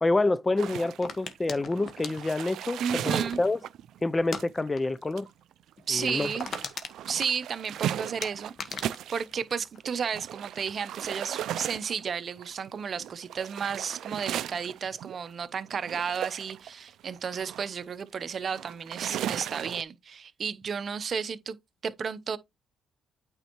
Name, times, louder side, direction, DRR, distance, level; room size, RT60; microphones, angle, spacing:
voice 1, 0.0-3.6 4.0-5.3 5.9-6.3, left 2 dB, 20° left, 0.4 m, -27 dB
sound 1, 0.6-9.4 9.8-19.8, right 11 dB, 75° right, 0.3 m, -37 dB
sound 2, 1.0-3.6 4.2-4.5 4.7-5.0 5.3-5.4 5.8-5.9 6.1-7.8 8.2-10.2 10.5-11.0, left 5 dB, 55° left, 1.3 m, -39 dB
voice 2, 2.8-3.4 5.9-6.5 7.1-21.6 21.8-22.4, right 6 dB, 50° right, 0.7 m, -33 dB
8.9 x 4.4 x 3.0 m
cardioid pair, 90°, 0 cm